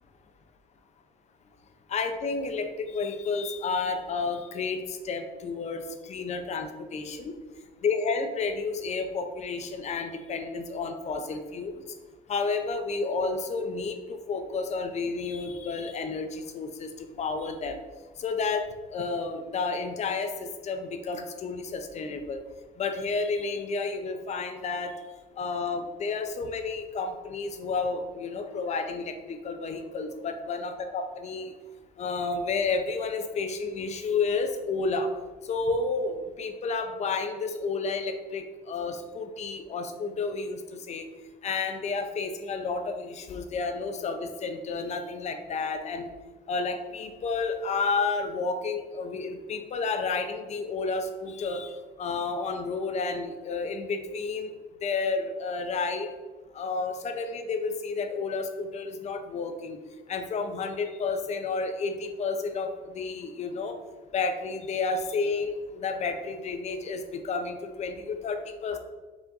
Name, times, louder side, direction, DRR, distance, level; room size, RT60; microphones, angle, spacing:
voice 1, 1.9-7.4 7.8-11.7 12.3-17.8 18.2-22.4 22.8-24.9 25.4-31.5 32.0-35.1 35.4-41.0 41.4-46.1 46.5-54.5 54.8-56.1 56.5-59.8 60.1-63.8 64.1-68.8, left 4 dB, 40° left, 7 dB, 0.6 m, -31 dB
4.8 x 2.5 x 3.8 m, 1.3 s
cardioid pair, 110°, 17 cm